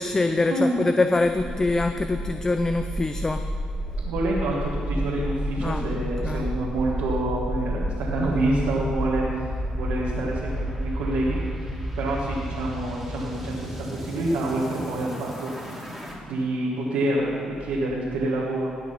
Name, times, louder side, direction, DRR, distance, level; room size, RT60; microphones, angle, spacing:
voice 1, 0.0-3.4 5.6-6.5, left 2 dB, 20° left, 8 dB, 0.5 m, -24 dB
sound 1, 1.2-16.1, equal, ahead, 2.7 m, -31 dB
voice 2, 4.0-11.4 12.0-15.8 16.2-18.7, right 1 dB, 90° right, -5 dB, 1.7 m, -27 dB
18.0 x 6.0 x 5.7 m, 2.2 s
cardioid pair, 80°, 2 cm